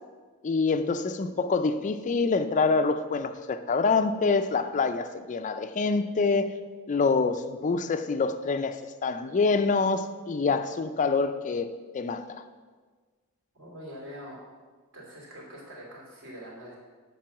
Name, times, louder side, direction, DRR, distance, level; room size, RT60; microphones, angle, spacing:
voice 1, 0.4-6.5 6.9-11.7 11.9-12.4, left 4 dB, 35° left, 10 dB, 0.4 m, -26 dB
voice 2, 13.5-14.4 14.9-16.7, equal, 60° right, -3 dB, 3.1 m, -44 dB
7.5 x 5.5 x 7.1 m, 1.4 s
head